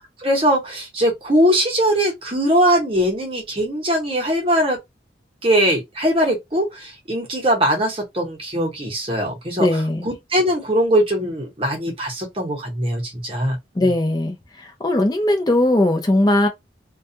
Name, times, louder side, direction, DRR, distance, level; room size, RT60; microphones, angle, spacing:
voice 1, 0.2-4.8 5.4-13.6, equal, 30° right, 0.9 m, -21 dB
voice 2, 9.6-10.1 13.8-16.5, left 1 dB, 20° left, 0.5 m, -19 dB
2.3 x 2.2 x 2.7 m
head